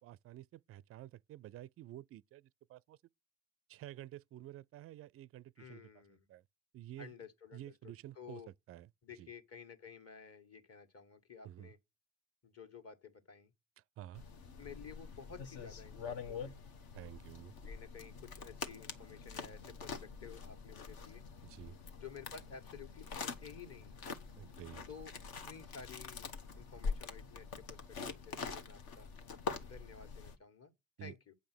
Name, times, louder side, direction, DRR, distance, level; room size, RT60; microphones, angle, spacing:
voice 1, 0.0-3.0 3.7-5.9 6.3-6.4 6.7-7.1 7.5-8.4 8.7-8.9 9.2-9.3 11.4-11.7 14.0-14.2 16.9-17.5 21.4-21.8 24.4-24.8 31.0-31.1, right 13 dB, 35° right, 0.4 m, -51 dB
voice 2, 5.6-6.3 7.0-8.5 9.0-11.8 12.4-13.5 14.6-16.7 17.6-21.2 21.9-23.9 24.9-25.1 25.4-29.1 29.6-30.7 31.0-31.3, left 6 dB, 35° left, 1.7 m, -53 dB
sound 1, 14.1-30.4, left 5 dB, 60° left, 1.2 m, -45 dB
8.5 x 5.2 x 6.1 m
hypercardioid pair, 45°, 41 cm